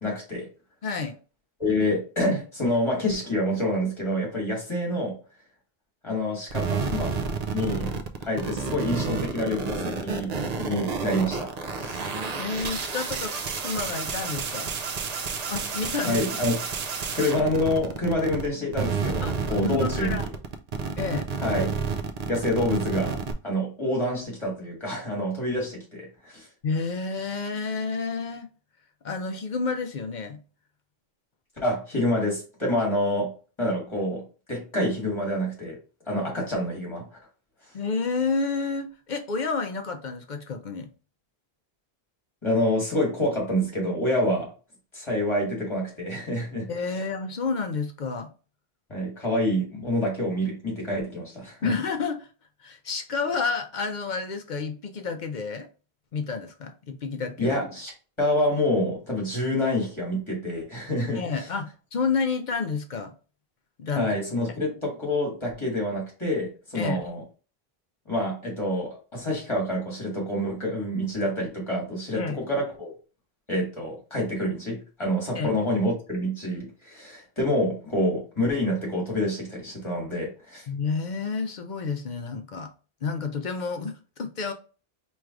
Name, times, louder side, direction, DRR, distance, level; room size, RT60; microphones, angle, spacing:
voice 1, 0.0-0.5 1.6-5.1 6.0-7.1 7.5-7.9 8.2-10.3 10.6-11.5 11.8-12.1 16.0-16.6 17.1-20.3 21.4-21.8 22.3-26.5 31.6-33.3 33.6-34.2 34.5-35.8 36.1-37.0 42.4-44.5 44.9-46.7 48.9-51.7 57.4-57.9 58.2-61.5 63.9-67.2 68.1-72.9 73.5-80.7, left 1 dB, 30° left, 1.7 m, -27 dB
voice 2, 0.8-1.2 12.4-14.7 15.5-16.2 19.2-20.3 21.0-21.3 26.6-28.5 29.0-30.4 37.7-40.9 46.7-48.3 51.6-52.3 52.6-55.7 56.1-57.6 61.1-63.1 63.8-64.1 66.7-67.1 72.1-72.4 75.3-75.6 80.7-82.7 83.0-84.5, left 4 dB, 55° left, 0.6 m, -30 dB
sound 1, 6.5-18.5 18.7-23.3, right 5 dB, 50° right, 0.5 m, -30 dB
4.6 x 3.1 x 2.4 m
omnidirectional pair, 1.0 m